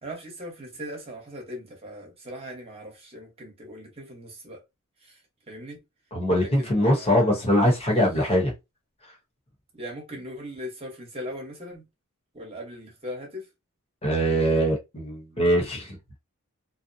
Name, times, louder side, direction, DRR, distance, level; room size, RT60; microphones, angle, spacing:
voice 1, 0.0-4.6 5.0-5.2 5.5-5.8 6.4-7.4 9.7-11.9 12.3-13.5, equal, 30° right, 1.0 m, -39 dB
voice 2, 6.1-8.5 14.0-16.0, equal, 30° left, 0.9 m, -22 dB
2.7 x 2.0 x 2.6 m
head